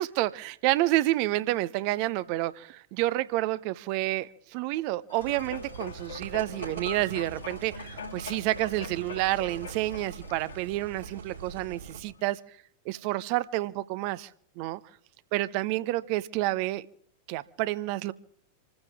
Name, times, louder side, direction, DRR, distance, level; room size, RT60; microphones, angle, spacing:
voice 1, 0.0-12.4 12.9-14.3 14.6-14.8 15.3-16.9 17.3-18.1, right 17 dB, 45° right, 0.7 m, -29 dB
sound 1, 5.1-11.7 12.2-12.3, left 5 dB, 70° left, 2.6 m, -43 dB
sound 2, 5.2-12.0, right 5 dB, 70° right, 4.6 m, -43 dB
27.0 x 15.0 x 3.6 m
figure-of-eight pair, 90°, 0 cm